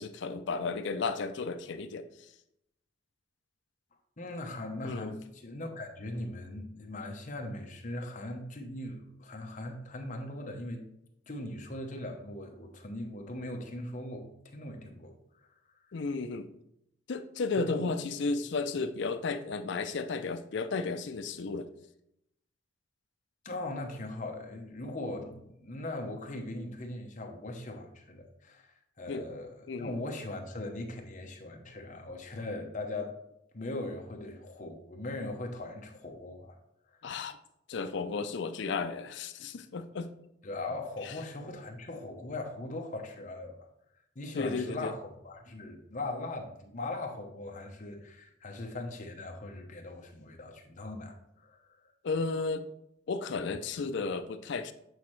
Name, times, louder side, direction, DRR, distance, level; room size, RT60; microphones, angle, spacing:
voice 1, 0.0-2.1 4.8-5.2 15.9-16.5 17.1-21.7 29.1-29.3 29.7-29.9 37.0-37.4 37.7-40.1 41.0-41.1 44.3-44.9 52.0-52.7 53.1-54.7, left 4 dB, 60° left, 10 dB, 0.4 m, -33 dB
voice 2, 4.2-10.9 11.3-15.2 17.5-17.9 23.4-33.2 33.5-36.6 36.9-37.1 40.4-43.7 44.1-51.9, left 2 dB, 40° left, 3 dB, 0.9 m, -40 dB
8.1 x 4.2 x 3.2 m, 0.80 s
head